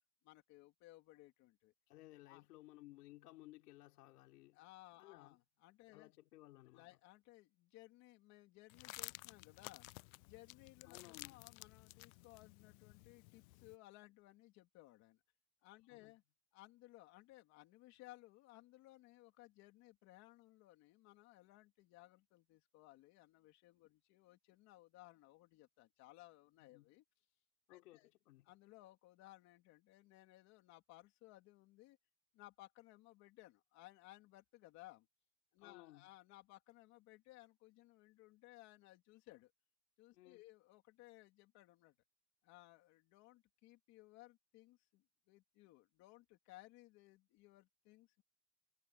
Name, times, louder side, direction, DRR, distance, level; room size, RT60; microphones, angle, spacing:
voice 1, 0.2-1.7 2.3-2.4 4.5-6.1 6.7-9.9 10.2-15.2 15.6-16.2 16.5-27.0 27.7-28.1 28.4-32.0 32.3-35.1 35.5-39.5 40.0-41.9 42.4-48.2, left 18 dB, 35° left, 3.2 m, -61 dB
voice 2, 1.9-4.6 5.0-5.4 5.9-6.9 10.8-11.4 15.6-16.1 23.8-23.9 26.6-26.9 27.7-28.5 35.6-36.1 40.1-40.4, left 18 dB, 85° left, 4.5 m, -60 dB
sound 1, 8.7-13.8, left 22 dB, 65° left, 0.5 m, -54 dB
supercardioid pair, 180°, 45 cm